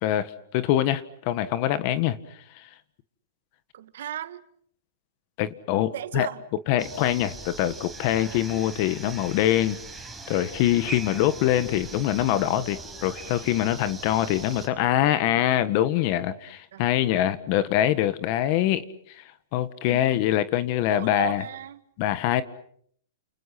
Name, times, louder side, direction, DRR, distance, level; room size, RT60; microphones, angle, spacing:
voice 1, 0.0-2.2 2.6-2.7 5.4-6.3 6.7-9.8 10.3-19.2 19.5-21.4 22.0-22.4, left 12 dB, 45° left, 13 dB, 1.5 m, -24 dB
voice 2, 3.7-4.4 5.9-6.4 16.7-16.8 19.8-20.2 20.9-21.8, right 11 dB, 70° right, 11 dB, 2.0 m, -35 dB
sound 1, 6.8-14.7, right 3 dB, 5° right, 5.2 m, -41 dB
30.0 x 29.0 x 6.0 m, 0.66 s
hypercardioid pair, 150°, 0 cm